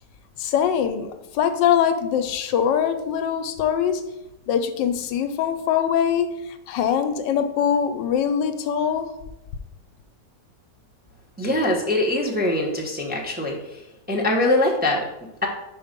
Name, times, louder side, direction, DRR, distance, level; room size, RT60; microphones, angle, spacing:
voice 1, 0.4-4.0 4.5-9.1, left 8 dB, 90° left, 8 dB, 1.3 m, -23 dB
voice 2, 11.4-13.8 14.1-15.0, left 1 dB, 10° right, -1 dB, 0.6 m, -22 dB
5.3 x 4.6 x 5.1 m, 0.91 s
omnidirectional pair, 1.9 m